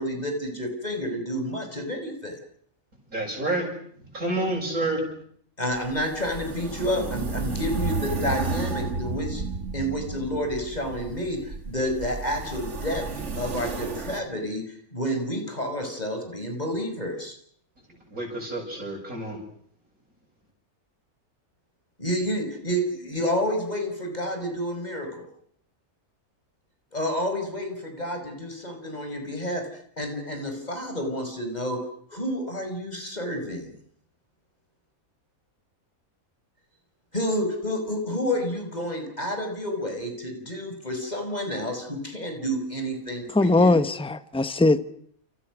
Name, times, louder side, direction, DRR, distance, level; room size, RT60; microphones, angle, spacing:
voice 1, 0.0-2.4 5.6-9.4 9.7-13.0 13.4-17.4 22.0-25.3 26.9-29.7 30.0-31.8 32.1-33.7 37.1-43.8, equal, 25° left, 5.6 m, -29 dB
voice 2, 3.1-3.7 4.0-5.1 18.1-19.4, right 2 dB, 65° right, 7.5 m, -29 dB
sound 1, 5.7-14.2, right 4 dB, 50° right, 2.2 m, -32 dB
voice 3, 43.3-44.8, left 2 dB, 5° left, 0.9 m, -20 dB
29.5 x 28.5 x 6.3 m
omnidirectional pair, 1.6 m